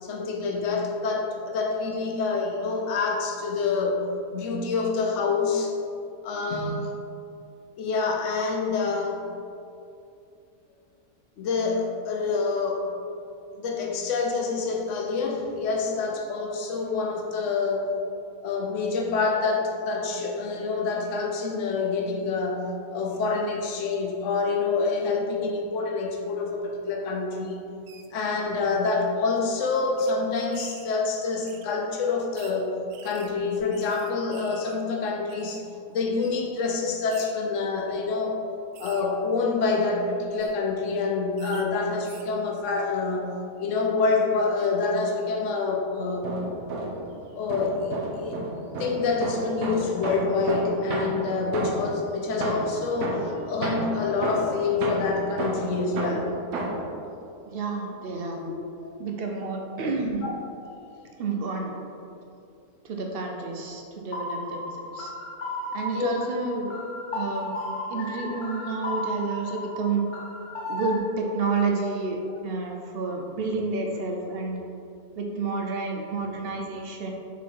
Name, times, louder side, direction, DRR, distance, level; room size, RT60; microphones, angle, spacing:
voice 1, 0.0-4.0 4.3-5.8 6.2-6.9 7.8-9.2 11.4-13.2 13.5-17.9 18.4-27.6 28.1-35.6 35.9-38.4 38.8-43.3 43.6-46.4 47.3-48.5 48.8-56.3 58.8-58.9 60.0-60.4 65.9-66.1, left 4 dB, 60° left, 1 dB, 1.0 m, -27 dB
sound 1, 27.9-28.1 28.9-29.0 29.3-29.4 30.0-30.1 30.5-30.9 31.4-31.7 32.3-32.6 32.9-34.8 35.0-35.6 36.2-36.4 37.1-37.3 37.9-38.1 38.7-39.0 40.2-40.5 41.4-41.6 42.0-42.3, right 8 dB, 85° right, 1.1 m, -49 dB
sound 2, 46.1-47.1 47.5-52.0 52.4-56.9, right 2 dB, 70° right, 1.3 m, -31 dB
voice 2, 57.5-58.4 59.0-60.2 61.2-61.8 62.8-65.1 65.7-66.8 67.1-67.5 67.9-70.0 70.7-74.6 75.2-77.1, right 3 dB, 50° right, 2 dB, 0.8 m, -30 dB
sound 3, 64.1-71.0, left 1 dB, 85° left, 1.8 m, -34 dB
6.1 x 4.0 x 4.6 m, 2.6 s
omnidirectional pair, 1.6 m